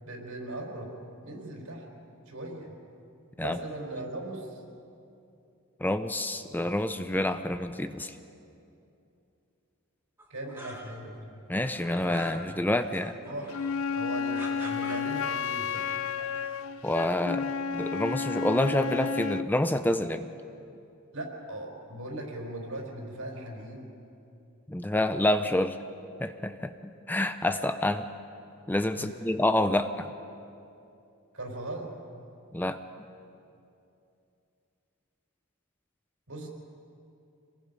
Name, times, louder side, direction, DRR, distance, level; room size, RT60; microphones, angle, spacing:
voice 1, 0.0-0.9 1.2-1.9 2.3-2.8 3.4-4.6 10.3-11.4 13.2-13.5 13.9-15.9 21.1-23.9 28.9-29.1 31.3-31.9 36.3-36.5, right 1 dB, 75° right, 0 dB, 4.7 m, -39 dB
voice 2, 5.8-8.2 11.5-13.2 16.8-17.5 17.7-20.3 24.7-25.8 26.2-28.1 28.7-30.1 32.5-32.8, left 1 dB, 10° left, 9 dB, 0.5 m, -28 dB
sound 1, 10.2-11.2 11.5-13.8 14.3-15.7 16.0-16.7, right 1 dB, 10° right, 2.4 m, -46 dB
Wind instrument woodwind instrument, 13.5-19.5, left 6 dB, 70° left, 0.5 m, -31 dB
27.0 x 21.0 x 5.4 m, 2.7 s
head